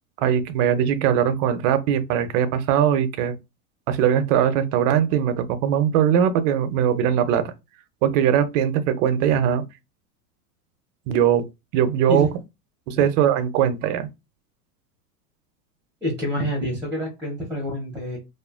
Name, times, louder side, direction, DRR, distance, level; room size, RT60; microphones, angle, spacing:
voice 1, 0.2-3.4 3.9-7.4 8.0-9.7 11.1-11.5 11.7-12.3 12.9-14.1, right 9 dB, 55° right, 0.6 m, -20 dB
voice 2, 16.0-18.2, equal, 5° right, 0.7 m, -27 dB
2.6 x 2.4 x 2.3 m
supercardioid pair, 120°, 46 cm